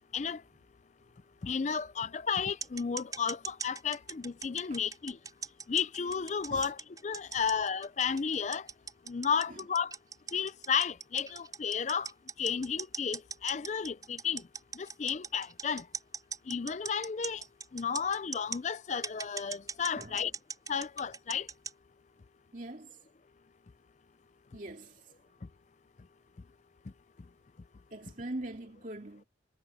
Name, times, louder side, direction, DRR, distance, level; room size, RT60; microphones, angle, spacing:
voice 1, 1.4-5.2 5.7-8.7 9.1-9.9 10.3-12.1 12.4-14.4 14.8-15.8 16.5-17.4 17.7-20.3 20.7-21.5, left 6 dB, 40° left, 0.4 m, -33 dB
sound 1, 2.6-18.6 19.0-21.7, right 5 dB, 20° right, 6.8 m, -40 dB
voice 2, 20.0-20.3 22.5-23.0 24.5-25.0 27.9-29.2, right 1 dB, 45° right, 2.7 m, -42 dB
head